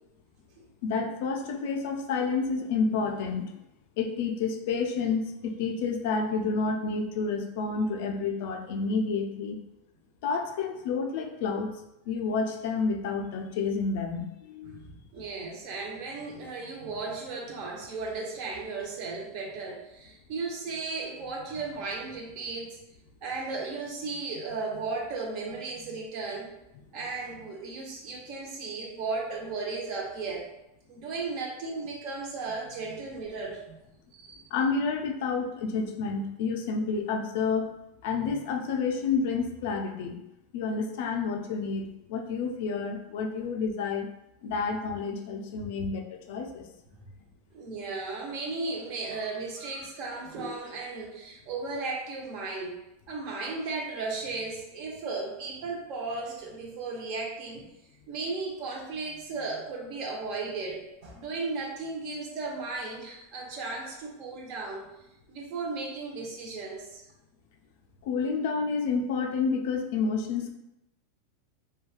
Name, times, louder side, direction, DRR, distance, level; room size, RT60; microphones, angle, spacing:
voice 1, 0.8-3.5 4.0-9.6 10.2-11.7 12.1-14.8 34.5-37.7 38.0-40.2 40.5-44.1 44.4-46.7 68.0-70.5, left 4 dB, 60° left, 4 dB, 0.4 m, -29 dB
voice 2, 14.7-22.8 23.2-26.5 26.9-30.4 30.9-33.8 34.1-34.4 45.6-45.9 47.5-52.8 53.1-57.6 58.1-64.9 65.3-67.0, right 3 dB, 45° right, -1 dB, 0.6 m, -35 dB
2.9 x 2.2 x 2.3 m, 0.88 s
supercardioid pair, 155°, 0 cm